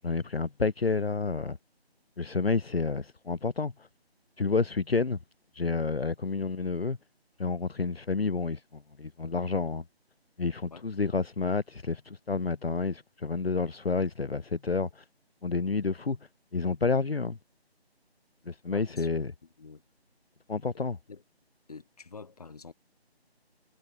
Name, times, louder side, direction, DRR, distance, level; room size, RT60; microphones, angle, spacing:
voice 1, 0.0-1.6 2.2-3.9 4.4-5.2 5.5-7.0 7.4-9.8 10.4-15.0 15.4-16.2 16.5-17.4 18.4-19.3 20.5-21.0, left 4 dB, 65° left, 1.0 m, -29 dB
voice 2, 18.7-19.1 19.6-19.8 20.7-21.2 21.7-22.7, left 4 dB, 35° left, 3.2 m, -47 dB
figure-of-eight pair, 160°, 32 cm